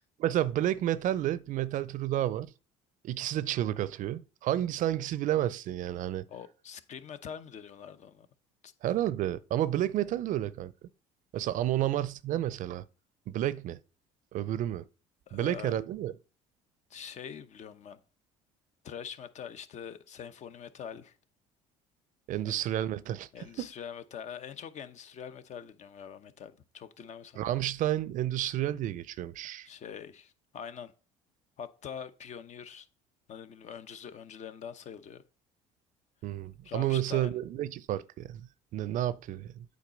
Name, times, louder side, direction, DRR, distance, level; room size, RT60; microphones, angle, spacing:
voice 1, 0.2-2.5 3.0-6.2 8.8-10.7 11.3-12.8 13.3-13.8 14.3-14.8 15.3-16.1 22.3-23.3 23.6-23.7 27.4-29.7 36.2-38.5 38.7-39.6, right 12 dB, 55° right, 0.5 m, -30 dB
voice 2, 6.3-8.3 8.6-8.7 15.3-15.8 16.9-18.0 18.8-21.1 22.5-22.6 23.3-27.5 29.6-30.9 31.6-32.9 33.3-35.2 36.6-37.3, left 8 dB, 50° left, 0.8 m, -44 dB
8.5 x 4.0 x 5.2 m
supercardioid pair, 75°, 16 cm